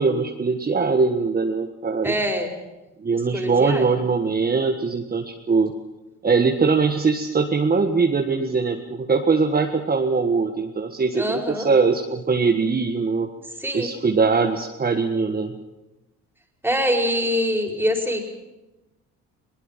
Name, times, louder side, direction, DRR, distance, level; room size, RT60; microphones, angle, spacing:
voice 1, 0.0-2.1 3.0-5.7 6.2-13.3 13.7-15.6, right 4 dB, 30° right, 4 dB, 1.7 m, -21 dB
voice 2, 2.0-2.5 3.3-3.8 11.1-11.7 13.6-13.9 16.6-18.2, equal, 5° right, 3 dB, 5.0 m, -24 dB
21.5 x 20.0 x 7.5 m, 1.0 s
cardioid pair, 90°, 30 cm